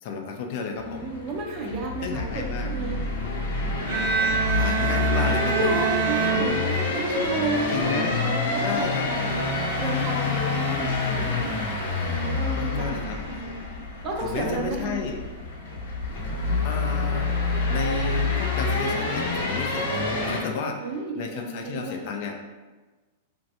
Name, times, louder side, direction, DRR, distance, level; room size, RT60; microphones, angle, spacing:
voice 1, 0.0-1.1 2.0-2.7 4.5-5.8 6.3-6.7 7.7-8.2 8.6-9.4 12.5-13.5 14.2-15.2 16.6-17.3 17.7-20.8 21.2-22.4, left 5 dB, 50° left, 3 dB, 0.4 m, -32 dB
sound 1, 0.8-20.4, left 3 dB, 85° left, 0.7 m, -27 dB
voice 2, 0.8-3.0 5.5-8.4 8.7-11.4 12.0-13.6 14.0-15.0 20.8-22.1, right 2 dB, 30° right, 1 dB, 0.5 m, -32 dB
Bowed string instrument, 3.9-7.2, right 6 dB, 70° right, 0.9 m, -26 dB
3.1 x 2.5 x 2.7 m, 1.2 s
supercardioid pair, 155°, 0 cm